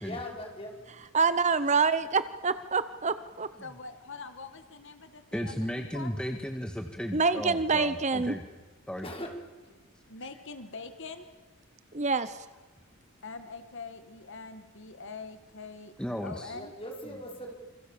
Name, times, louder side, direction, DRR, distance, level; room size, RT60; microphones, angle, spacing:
voice 1, 0.0-0.8 9.0-9.4 9.6-9.7 16.5-17.5, left 1 dB, 25° left, 1 dB, 5.6 m, -40 dB
voice 2, 1.1-3.5 7.1-8.3 11.9-12.4, right 4 dB, 30° right, 13 dB, 0.9 m, -26 dB
voice 3, 3.6-6.1 10.1-11.3 13.2-15.9 16.2-16.7, left 4 dB, 55° left, 9 dB, 1.9 m, -43 dB
voice 4, 5.3-8.4 8.9-9.1 16.0-16.6, equal, 5° left, 4 dB, 1.8 m, -35 dB
28.5 x 26.0 x 7.3 m, 1.2 s
head